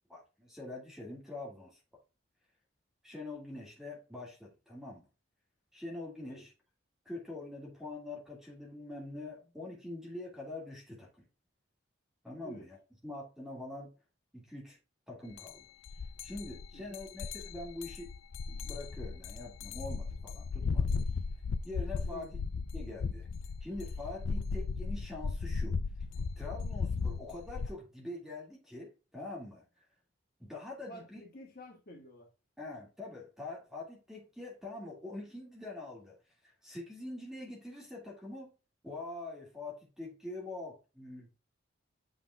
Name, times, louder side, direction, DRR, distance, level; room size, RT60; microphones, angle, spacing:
voice 1, 0.1-1.8 3.0-5.0 5.7-6.5 7.1-11.3 12.2-12.8 13.0-13.9 14.3-14.8 15.1-15.6 16.2-18.1 18.5-20.9 21.6-22.3 22.7-23.3 23.6-25.8 26.4-29.6 30.4-31.2 32.6-36.2 36.6-38.5 38.8-41.4, left 2 dB, ahead, 2.0 m, -44 dB
sound 1, 15.4-15.5 15.9-27.7, left 4 dB, 75° left, 0.4 m, -36 dB
voice 2, 16.7-17.1 22.1-22.3 30.9-32.3, right 1 dB, 45° left, 1.9 m, -50 dB
7.9 x 5.3 x 2.3 m
head